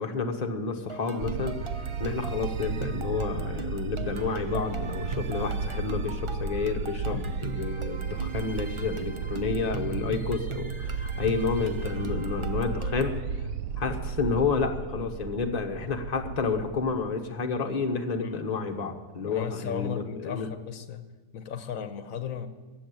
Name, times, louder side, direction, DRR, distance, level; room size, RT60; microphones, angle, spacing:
voice 1, 0.0-1.6 2.0-13.4 13.8-20.5, left 4 dB, 30° left, 4 dB, 1.1 m, -30 dB
sound 1, 0.9-13.2, right 5 dB, 45° right, 0.4 m, -41 dB
sound 2, 1.2-16.9, right 5 dB, 80° right, 1.2 m, -34 dB
voice 2, 19.2-21.0 21.3-22.5, left 8 dB, 80° left, 10 dB, 1.2 m, -35 dB
15.0 x 7.7 x 9.0 m, 1.3 s
omnidirectional pair, 1.4 m